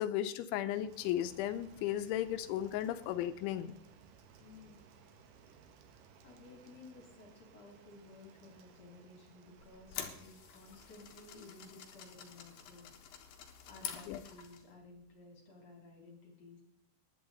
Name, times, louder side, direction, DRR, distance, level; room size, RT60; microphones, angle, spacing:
voice 1, 0.0-3.8 14.1-14.2, left 12 dB, 85° left, 9 dB, 3.1 m, -35 dB
Rain, 0.7-13.1, right 5 dB, 65° right, 2.4 m, -61 dB
voice 2, 4.4-4.8 6.2-12.9 13.7-16.6, left 3 dB, 40° left, 1 dB, 3.4 m, -55 dB
sound 1, 9.6-14.7, left 8 dB, 60° left, 2.7 m, -48 dB
19.5 x 11.5 x 4.0 m, 0.79 s
omnidirectional pair, 5.3 m